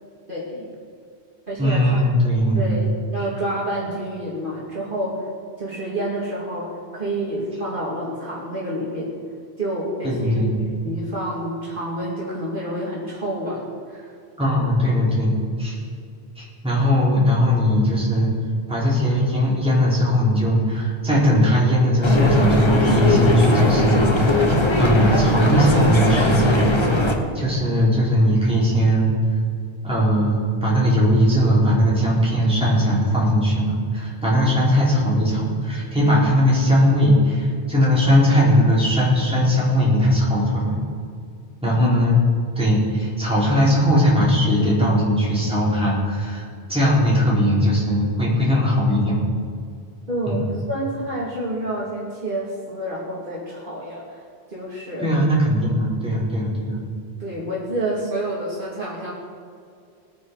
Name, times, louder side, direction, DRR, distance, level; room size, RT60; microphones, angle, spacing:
voice 1, 0.3-0.7 1.5-2.0 2.5-5.3 5.6-9.1 9.6-10.4 10.8-13.6 13.9-14.1 41.8-42.0 50.1-54.2 54.5-55.1 55.9-56.1 57.2-59.1, right 1 dB, 50° right, -5 dB, 2.4 m, -28 dB
voice 2, 1.6-2.8 10.0-10.6 14.4-15.8 16.4-18.3 18.7-24.4 24.7-26.7 27.3-29.2 29.8-40.8 41.6-42.2 42.6-49.2 50.3-50.4 55.0-56.8, equal, 5° right, -7 dB, 4.1 m, -19 dB
sound 1, 22.0-27.1, left 2 dB, 25° left, 1.3 m, -19 dB
20.5 x 9.3 x 4.8 m, 2.4 s
omnidirectional pair, 1.1 m